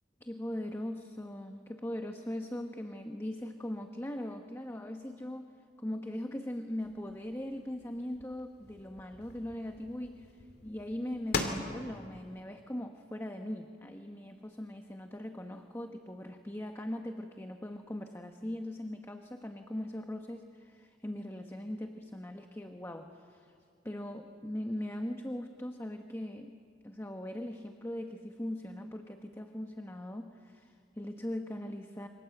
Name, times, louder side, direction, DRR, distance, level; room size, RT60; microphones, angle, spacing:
voice 1, 0.2-5.5 5.8-10.3 10.6-23.5 23.8-26.6 26.8-32.1, left 1 dB, 15° left, 5 dB, 1.1 m, -40 dB
sound 1, 6.8-12.4, left 3 dB, 60° left, 2.7 m, -41 dB
28.0 x 25.0 x 7.9 m, 2.2 s
head